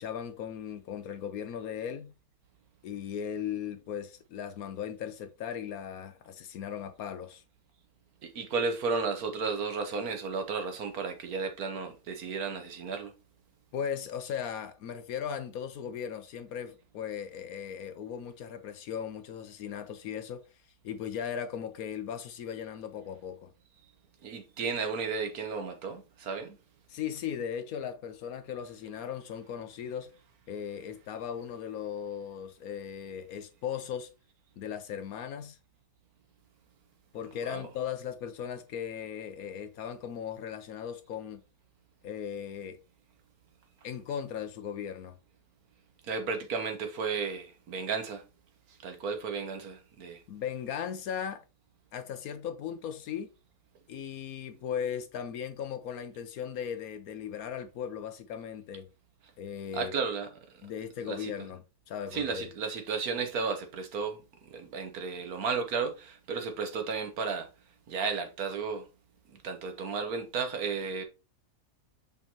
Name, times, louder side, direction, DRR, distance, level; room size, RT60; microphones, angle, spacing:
voice 1, 0.0-2.1 2.8-7.4 13.7-20.4 20.8-23.5 26.9-30.1 30.5-34.1 34.6-35.6 37.1-41.4 42.0-42.8 43.8-45.2 50.3-51.5 51.9-53.3 53.9-58.9 59.4-59.9 60.6-61.6 61.9-62.5, left 8 dB, 70° left, 1.0 m, -37 dB
voice 2, 8.2-13.1 23.8-23.9 24.2-26.6 37.5-37.7 46.0-48.2 48.7-50.2 59.7-60.7 61.1-61.3 62.1-67.5 67.9-68.9 69.3-71.0, right 5 dB, 65° right, 1.4 m, -33 dB
6.3 x 5.2 x 2.9 m
omnidirectional pair, 1.7 m